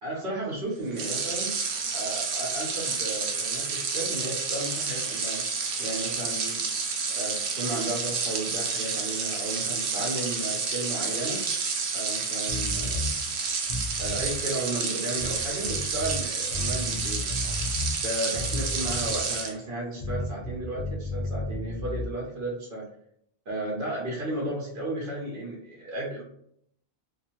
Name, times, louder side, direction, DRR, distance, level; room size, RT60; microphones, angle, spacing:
voice 1, 0.0-1.5 1.9-5.4 5.8-6.6 7.2-11.4 11.9-13.1 14.0-17.5 17.9-22.9 23.5-26.2, right 1 dB, 65° right, -4 dB, 0.9 m, -34 dB
sound 1, 0.9-19.5, right 5 dB, 90° right, 0.9 m, -30 dB
sound 2, 12.5-13.1 13.6-14.4 15.2-16.2 16.5-18.0 18.3-19.3 20.0-22.1, left 2 dB, 40° left, 0.7 m, -33 dB
2.5 x 2.3 x 2.9 m, 0.70 s
omnidirectional pair, 1.1 m